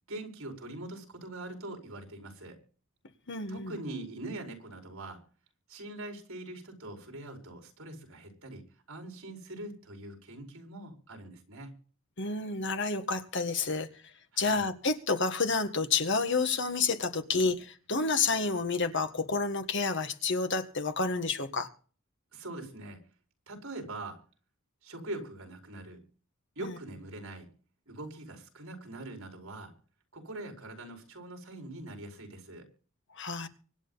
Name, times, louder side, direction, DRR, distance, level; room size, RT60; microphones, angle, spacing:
voice 1, 0.1-2.6 3.5-5.2 5.7-11.8 14.3-14.7 22.3-23.0 23.5-24.2 24.8-26.0 26.5-27.5 27.9-29.7 30.1-32.7, right 2 dB, 70° right, 5.1 m, -43 dB
voice 2, 3.3-3.7 12.2-13.9 14.4-21.7 26.6-26.7 33.1-33.5, left 4 dB, 60° left, 1.7 m, -29 dB
25.0 x 9.2 x 4.1 m
head